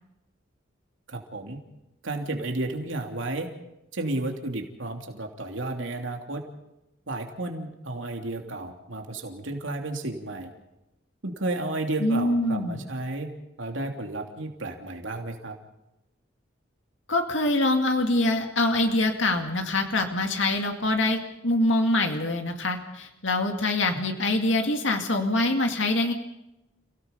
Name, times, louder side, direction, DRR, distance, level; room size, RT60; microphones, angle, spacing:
voice 1, 1.1-1.6 2.0-3.5 3.9-6.4 7.1-10.5 11.2-13.3 13.6-15.6, right 2 dB, 90° right, 3 dB, 3.0 m, -32 dB
voice 2, 12.0-12.8 17.1-26.1, left 2 dB, 80° left, 4 dB, 2.2 m, -24 dB
29.5 x 17.5 x 5.4 m, 0.90 s
head